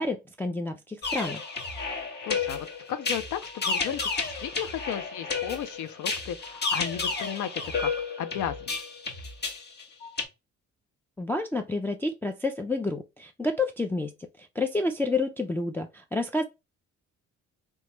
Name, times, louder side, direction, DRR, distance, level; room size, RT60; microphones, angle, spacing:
voice 1, 0.0-1.4 11.2-14.1 14.6-16.4, left 2 dB, 5° left, 0.3 m, -29 dB
sound 1, 1.0-10.3, left 4 dB, 35° left, 0.9 m, -32 dB
voice 2, 2.3-7.9 8.2-8.7, left 9 dB, 80° left, 0.5 m, -34 dB
3.1 x 2.2 x 2.9 m
cardioid pair, 90°, 30 cm